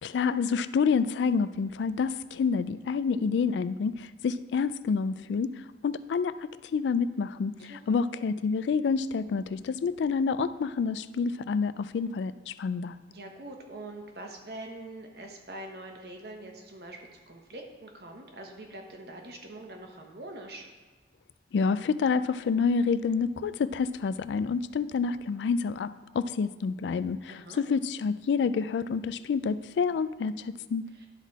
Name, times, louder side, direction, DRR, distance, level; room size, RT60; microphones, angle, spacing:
voice 1, 0.0-5.5 5.8-13.0 21.5-30.8, left 5 dB, 80° left, 15 dB, 0.3 m, -28 dB
voice 2, 7.6-8.0 13.1-20.6 27.3-27.6 31.0-31.1, right 1 dB, 60° right, 2 dB, 1.1 m, -44 dB
12.0 x 4.1 x 4.1 m, 1.2 s
head